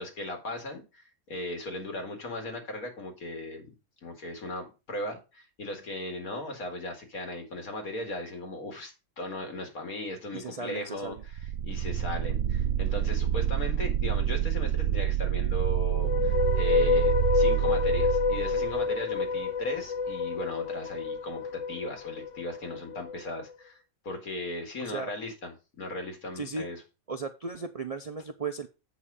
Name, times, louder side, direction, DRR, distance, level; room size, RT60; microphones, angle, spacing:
voice 1, 0.0-3.7 4.0-11.1 11.6-26.8, left 1 dB, 80° left, 4 dB, 2.7 m, -37 dB
voice 2, 10.3-11.2 24.8-25.1 26.3-26.7 27.1-28.7, right 4 dB, 50° right, 8 dB, 0.4 m, -36 dB
sound 1, 11.2-18.9, right 11 dB, 85° right, 1.1 m, -28 dB
sound 2, 15.9-23.2, left 5 dB, 60° left, 1.1 m, -28 dB
8.3 x 5.5 x 4.9 m, 0.29 s
omnidirectional pair, 1.5 m